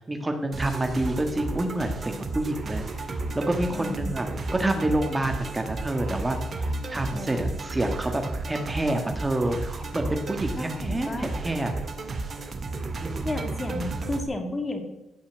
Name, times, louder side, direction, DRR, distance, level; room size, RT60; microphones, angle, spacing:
voice 1, 0.0-9.6 9.9-11.7 13.0-13.5, right 1 dB, 15° right, 5 dB, 1.5 m, -28 dB
sound 1, 0.5-14.2, right 2 dB, 40° right, 2.0 m, -33 dB
voice 2, 3.7-4.1 7.1-7.5 10.5-11.3 13.2-14.8, left 2 dB, 25° left, 5 dB, 2.5 m, -33 dB
16.0 x 5.7 x 8.0 m, 0.93 s
cardioid pair, 90°, 0 cm